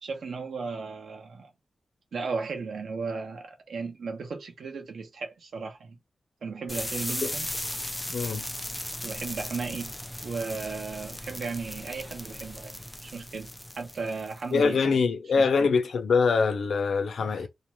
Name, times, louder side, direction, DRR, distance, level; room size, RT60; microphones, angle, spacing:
voice 1, 0.0-1.5 2.1-6.0 6.4-7.5 9.0-9.9 10.2-13.5 13.8-15.0 15.4-15.7 17.2-17.5, right 4 dB, 80° right, 0.8 m, -35 dB
sound 1, 6.7-14.6, left 1 dB, 10° left, 0.4 m, -37 dB
voice 2, 8.1-8.5 14.5-17.5, left 5 dB, 85° left, 0.5 m, -24 dB
2.5 x 2.2 x 3.0 m
wide cardioid pair, 160°, 0 cm